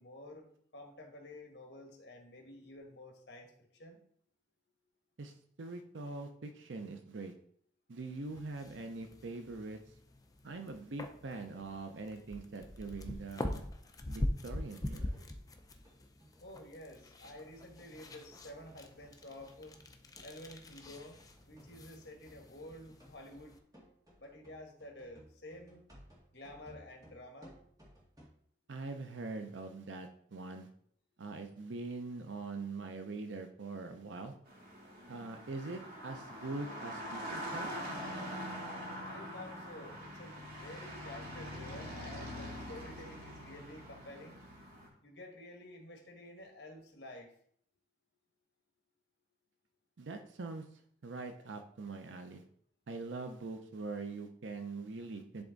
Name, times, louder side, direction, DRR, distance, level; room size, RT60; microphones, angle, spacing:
voice 1, 0.0-4.0 16.4-19.8 20.2-23.5 24.2-25.8 26.3-27.5 39.0-44.4 45.0-47.3, left 1 dB, 60° left, 2 dB, 1.4 m, -51 dB
voice 2, 5.2-7.3 7.9-9.8 10.4-13.7 14.1-15.2 28.7-30.7 31.2-34.3 35.1-37.8 50.0-52.4 52.9-55.4, right 3 dB, 90° right, 6 dB, 0.6 m, -43 dB
sound 1, 8.3-23.6, left 1 dB, 20° left, 0.6 m, -44 dB
sound 2, 14.8-28.3, equal, 20° right, 2.0 m, -61 dB
sound 3, 34.5-44.9, equal, 55° right, 2.3 m, -44 dB
10.5 x 3.5 x 3.9 m, 0.63 s
head